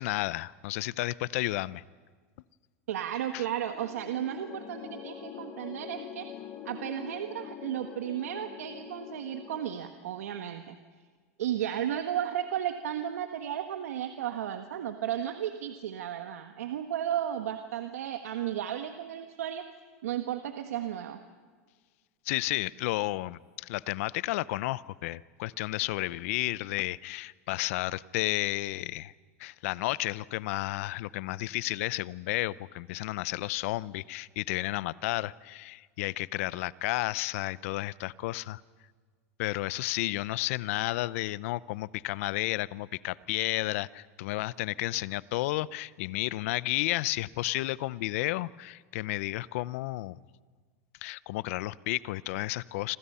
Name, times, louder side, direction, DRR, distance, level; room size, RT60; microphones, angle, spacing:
voice 1, 0.0-1.8 3.3-3.4 22.3-29.1 29.4-38.6 39.4-50.2 51.0-53.0, left 18 dB, 65° left, 20 dB, 0.7 m, -32 dB
voice 2, 2.9-6.3 6.6-10.8 11.4-19.6 20.0-21.2, right 10 dB, 85° right, 7 dB, 1.4 m, -34 dB
sound 1, 3.7-9.8, left 9 dB, 40° left, 3.2 m, -44 dB
27.5 x 26.0 x 5.6 m, 1.5 s
supercardioid pair, 115°, 8 cm